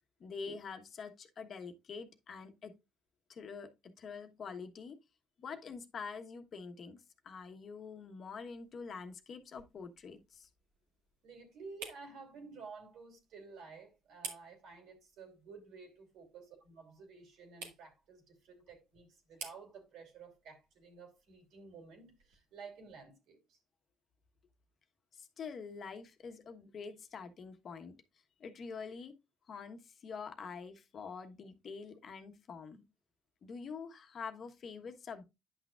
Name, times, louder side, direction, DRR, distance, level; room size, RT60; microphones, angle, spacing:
voice 1, 0.2-2.8 3.3-5.0 5.4-10.5 25.1-28.0 28.4-29.1 29.5-32.8 33.4-35.2, left 5 dB, 50° left, 1.2 m, -46 dB
sound 1, 8.2-23.0, right 5 dB, 85° right, 1.8 m, -55 dB
voice 2, 11.2-23.6, right 4 dB, 70° right, 3.0 m, -53 dB
10.0 x 6.1 x 2.4 m
supercardioid pair, 70°, 0 cm